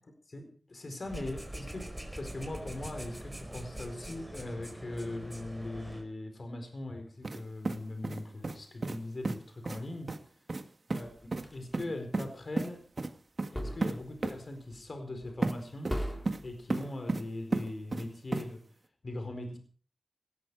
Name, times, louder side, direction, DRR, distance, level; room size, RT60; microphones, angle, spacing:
voice 1, 0.3-10.2 10.9-11.1 11.5-12.8 13.5-16.0 16.4-18.6 19.0-19.6, left 2 dB, 60° left, 6 dB, 4.5 m, -40 dB
sound 1, 1.0-6.0, right 1 dB, 10° right, 4.9 m, -43 dB
sound 2, 7.2-7.4 7.6-8.6 8.8-9.0 9.2-9.4 9.6-9.8 10.1-10.2 10.5-10.6 10.9-11.0 11.3-11.4 11.7-12.3 12.6-12.7 13.0-13.1 13.4-13.5 13.8-13.9 14.2-14.3 15.4-15.5 15.8-16.4 16.7-17.2 17.5-18.0 18.3-18.4, right 3 dB, 60° right, 1.8 m, -32 dB
sound 3, 11.0-11.8 13.5-14.3 14.7-14.9 15.2-15.6 15.9-16.5, equal, 10° left, 4.1 m, -39 dB
18.5 x 13.5 x 4.8 m, 0.42 s
wide cardioid pair, 65°, 0 cm